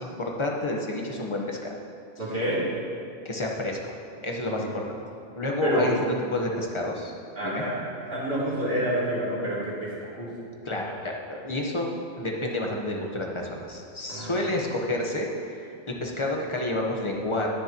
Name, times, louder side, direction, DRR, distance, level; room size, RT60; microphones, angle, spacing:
voice 1, 0.0-1.7 3.2-3.8 4.2-5.0 5.4-7.1 7.4-7.6 10.6-17.5, left 1 dB, 25° left, 0 dB, 1.1 m, -30 dB
voice 2, 2.2-2.6 4.6-4.7 5.6-5.9 7.4-10.3 14.1-14.6, right 1 dB, 50° right, -9 dB, 3.2 m, -28 dB
19.5 x 6.6 x 3.0 m, 2.5 s
omnidirectional pair, 1.2 m